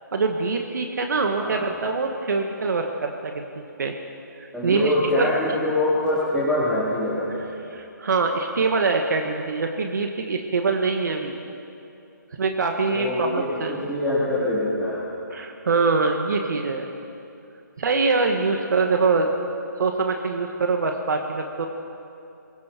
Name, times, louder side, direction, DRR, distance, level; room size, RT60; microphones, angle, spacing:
voice 1, 0.1-3.9 4.4-5.3 7.7-11.4 12.4-13.7 15.3-16.9 17.8-19.3 19.8-21.7, right 4 dB, 65° right, 3 dB, 1.7 m, -24 dB
voice 2, 4.5-7.5 12.9-13.3 13.7-15.1, left 1 dB, ahead, -14 dB, 3.7 m, -24 dB
27.5 x 22.5 x 4.6 m, 2.7 s
hypercardioid pair, 155°, 11 cm